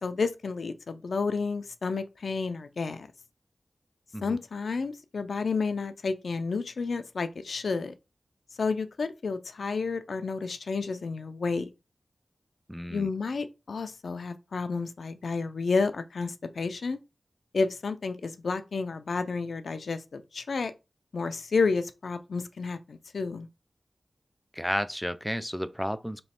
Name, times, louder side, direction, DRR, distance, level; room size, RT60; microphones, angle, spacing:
voice 1, 0.0-3.1 4.2-7.9 8.6-11.7 12.9-17.0 17.5-20.7 21.1-23.5, left 4 dB, 80° left, 0.4 m, -31 dB
voice 2, 12.7-13.1 24.5-26.2, equal, ahead, 0.4 m, -32 dB
3.1 x 3.1 x 4.2 m
wide cardioid pair, 60°, 0 cm